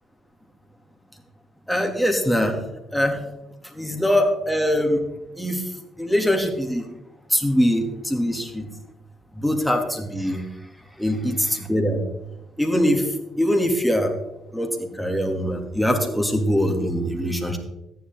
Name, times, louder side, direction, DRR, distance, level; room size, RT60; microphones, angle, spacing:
voice 1, 1.7-2.6 2.9-3.2 3.7-5.0 5.4-5.6 6.0-6.9 7.3-8.7 9.4-10.4 11.0-11.3 11.7-12.0 12.6-13.1 13.4-14.1 14.5-17.6, equal, ahead, 2 dB, 2.8 m, -22 dB
14.0 x 9.9 x 4.0 m, 0.88 s
supercardioid pair, 65°, 0 cm